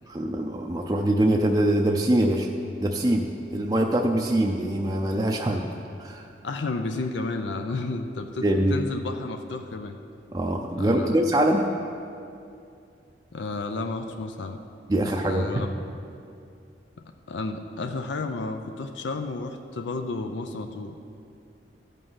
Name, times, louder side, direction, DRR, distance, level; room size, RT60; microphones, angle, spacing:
voice 1, 0.1-2.5 2.8-5.6 6.0-6.3 8.4-8.8 10.3-11.6 14.9-15.5, right 1 dB, 20° right, 1 dB, 0.4 m, -23 dB
voice 2, 6.4-10.0 10.8-11.2 13.3-14.6 15.0-15.7 17.3-21.0, left 3 dB, 80° left, 6 dB, 0.5 m, -32 dB
13.5 x 5.5 x 5.5 m, 2.5 s
head